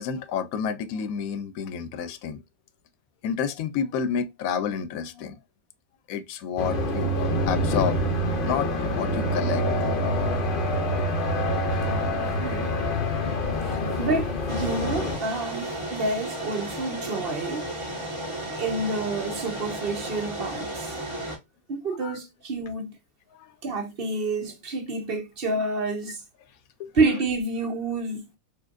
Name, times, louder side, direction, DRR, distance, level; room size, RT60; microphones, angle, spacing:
voice 1, 0.0-2.4 3.2-5.4 6.1-8.0 8.4-9.6 11.9-12.2 13.5-13.6 14.8-15.0 21.1-21.2 22.0-22.2 23.4-23.5 26.8-26.9, left 7 dB, 90° left, 1.0 m, -30 dB
sound 1, 6.6-15.2, left 1 dB, 55° left, 0.7 m, -26 dB
voice 2, 12.4-12.8 13.6-17.7 18.6-21.0 21.7-22.9 23.6-26.2 26.9-28.2, right 3 dB, 45° right, 1.0 m, -29 dB
sound 2, 14.5-21.4, right 1 dB, 25° right, 1.3 m, -34 dB
4.4 x 2.5 x 2.4 m
omnidirectional pair, 1.4 m